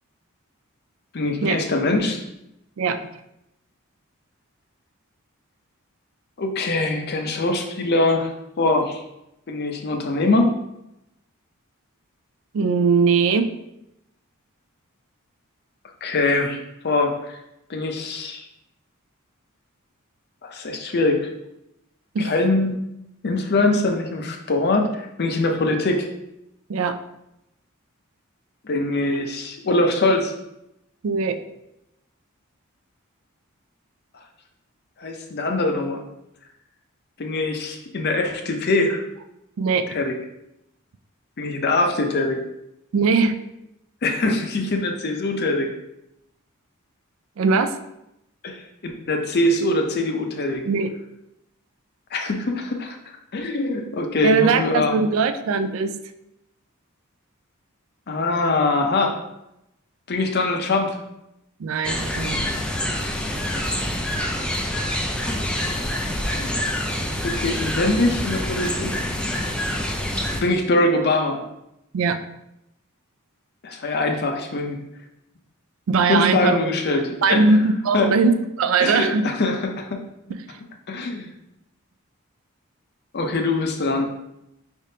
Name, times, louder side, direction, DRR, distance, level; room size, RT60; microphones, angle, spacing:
voice 1, 1.1-2.2 6.4-9.0 9.5-10.5 16.0-17.4 17.7-18.4 20.4-21.3 22.2-22.8 23.2-26.1 28.6-30.3 35.0-36.0 37.2-39.0 39.9-40.1 41.4-42.4 44.0-45.7 48.4-50.6 52.1-53.0 53.3-55.0 58.1-59.2 60.1-61.0 66.2-66.7 67.2-68.9 70.4-71.4 73.6-74.8 76.1-77.4 77.9-78.1 78.8-80.0 80.9-81.3 83.1-84.1, left 2 dB, 50° left, 4 dB, 0.6 m, -23 dB
voice 2, 12.5-13.5 22.1-22.3 26.7-27.0 31.0-31.4 39.6-39.9 42.9-43.4 47.4-47.7 50.7-50.9 54.2-55.9 61.6-62.4 71.9-72.2 75.9-76.7 77.2-79.3 80.5-80.6, right 4 dB, 65° right, 10 dB, 0.4 m, -20 dB
sound 1, 61.8-70.4, left 1 dB, 5° left, 0.4 m, -26 dB
4.9 x 3.5 x 2.7 m, 0.86 s
head